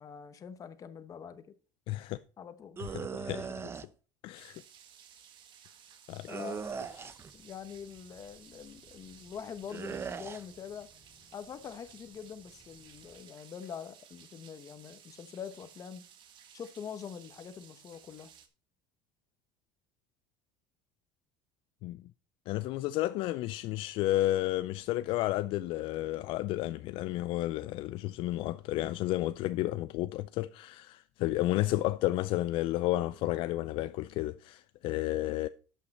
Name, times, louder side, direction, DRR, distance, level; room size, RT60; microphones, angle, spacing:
voice 1, 0.0-1.5 2.4-2.8 6.3-6.8 7.3-10.9 11.3-16.0 16.5-18.3, left 7 dB, 35° left, 1.0 m, -44 dB
voice 2, 1.9-2.2 3.1-3.5 4.2-4.6 6.1-6.3 21.8-22.0 22.5-35.5, left 16 dB, 60° left, 0.4 m, -32 dB
sound 1, 2.8-3.9 6.3-7.3 9.7-10.4, right 6 dB, 25° right, 0.6 m, -39 dB
sound 2, 4.3-18.5, right 9 dB, 50° right, 1.4 m, -57 dB
Cricket, 6.8-13.2, right 1 dB, 10° right, 2.9 m, -63 dB
11.5 x 5.7 x 4.2 m
cardioid pair, 120°, 10 cm